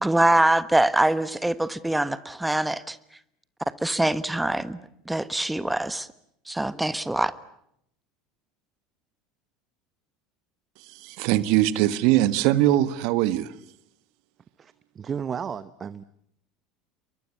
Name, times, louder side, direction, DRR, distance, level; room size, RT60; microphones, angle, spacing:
voice 1, 0.0-3.0 3.8-4.8 5.1-6.1 6.5-7.3, right 1 dB, 5° right, 15 dB, 1.4 m, -23 dB
voice 2, 10.8-13.5, right 14 dB, 60° right, 15 dB, 1.4 m, -22 dB
voice 3, 14.6-16.0, right 7 dB, 30° right, 15 dB, 1.0 m, -33 dB
29.0 x 23.0 x 8.4 m, 0.74 s
hypercardioid pair, 75°, 0 cm